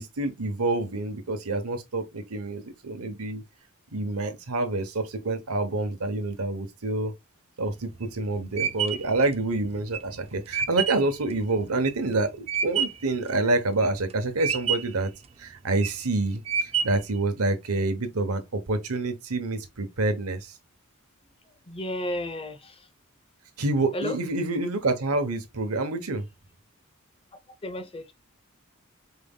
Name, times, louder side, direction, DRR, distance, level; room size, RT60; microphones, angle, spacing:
voice 1, 0.0-3.4 3.9-7.1 7.6-15.1 15.4-20.6 23.6-26.2, right 2 dB, 75° right, 1.0 m, -27 dB
sound 1, 7.7-13.1 13.6-14.1 14.4-15.1 15.6-16.0 16.5-17.2, right 7 dB, 30° right, 0.3 m, -29 dB
voice 2, 21.7-22.7 23.9-24.1 27.6-28.0, left 1 dB, 25° left, 0.7 m, -32 dB
4.6 x 3.6 x 2.3 m
head